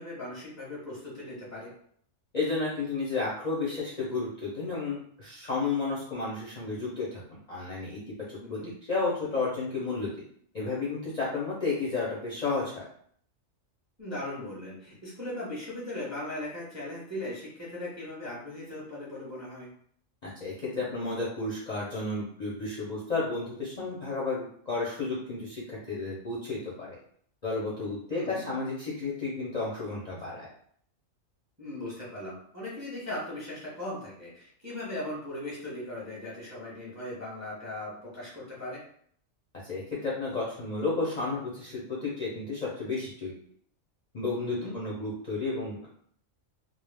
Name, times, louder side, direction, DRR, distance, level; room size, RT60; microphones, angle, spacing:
voice 1, 0.0-1.7 8.4-8.7 14.0-19.7 28.1-28.5 31.6-38.8 44.4-44.8, left 1 dB, 15° right, -6 dB, 0.6 m, -38 dB
voice 2, 2.3-7.2 7.5-10.1 10.5-12.8 20.2-27.0 27.4-30.5 39.7-43.3 44.1-45.9, left 3 dB, 50° left, -6 dB, 0.5 m, -32 dB
2.3 x 2.0 x 3.2 m, 0.62 s
omnidirectional pair, 1.3 m